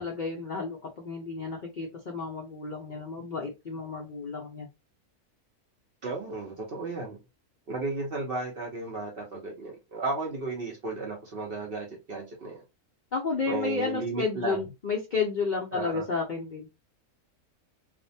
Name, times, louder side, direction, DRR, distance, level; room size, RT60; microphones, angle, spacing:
voice 1, 0.0-4.7 13.1-16.7, left 4 dB, 80° left, 0.4 m, -32 dB
voice 2, 6.0-7.2 7.7-12.6 13.5-14.6 15.7-16.0, right 3 dB, 55° right, 0.6 m, -34 dB
2.6 x 2.1 x 2.6 m
omnidirectional pair, 1.6 m